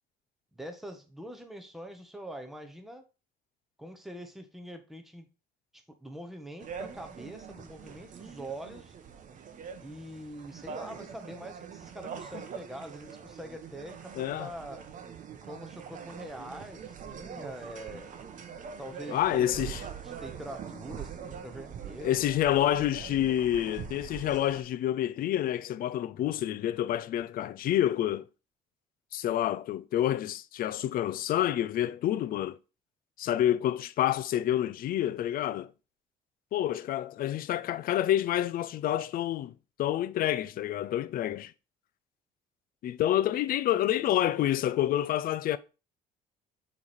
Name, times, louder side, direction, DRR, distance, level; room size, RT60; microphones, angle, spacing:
voice 1, 0.5-3.0 3.8-5.3 5.7-8.9 9.8-14.9 15.4-18.1 18.8-19.8 20.0-22.3, right 1 dB, ahead, 1.0 m, -44 dB
sound 1, 6.6-24.6, right 7 dB, 50° right, 0.9 m, -43 dB
voice 2, 14.2-14.5 19.1-19.8 22.0-28.2 29.1-32.6 33.2-35.7 36.5-39.5 39.8-41.5 42.8-45.6, left 12 dB, 60° left, 0.5 m, -28 dB
7.1 x 3.3 x 4.3 m
cardioid pair, 110°, 17 cm